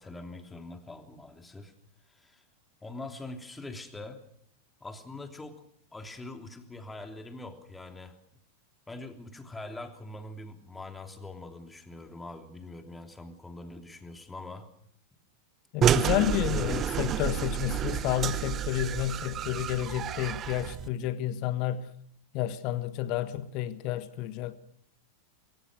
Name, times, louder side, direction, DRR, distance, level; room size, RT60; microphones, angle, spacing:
voice 1, 0.0-1.7 2.1-2.4 2.8-4.2 4.8-5.6 5.9-8.2 8.9-14.7 16.4-17.1, left 2 dB, 10° left, 3.1 m, -43 dB
voice 2, 15.7-21.9 22.3-24.6, left 12 dB, 40° left, 1.4 m, -30 dB
sound 1, 15.8-20.9, right 10 dB, 30° right, 1.0 m, -29 dB
24.5 x 23.5 x 6.4 m
figure-of-eight pair, 90°, 0 cm